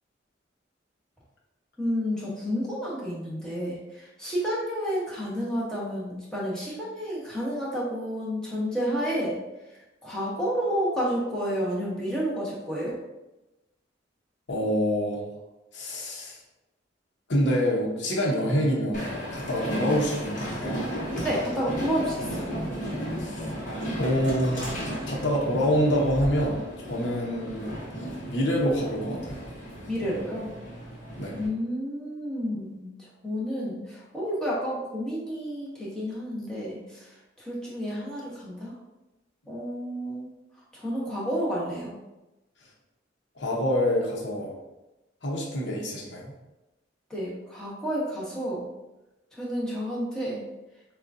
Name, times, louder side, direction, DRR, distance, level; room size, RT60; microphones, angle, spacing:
voice 1, 1.8-9.4 10.0-13.0 21.2-22.5 29.9-30.5 31.3-32.9 33.2-37.1 37.4-38.7 39.5-40.3 40.7-42.0 47.1-48.6 49.3-50.4, equal, 5° left, -7 dB, 1.0 m, -30 dB
voice 2, 14.5-15.3 15.7-16.4 17.3-20.8 23.2-23.4 24.0-24.8 25.1-27.7 28.3-29.4 31.2-31.3 43.4-44.5 45.2-46.3, equal, 65° left, -2 dB, 1.0 m, -26 dB
Train, 18.9-31.5, equal, 40° left, 1.1 m, -34 dB
6.3 x 2.4 x 2.7 m, 1.0 s
head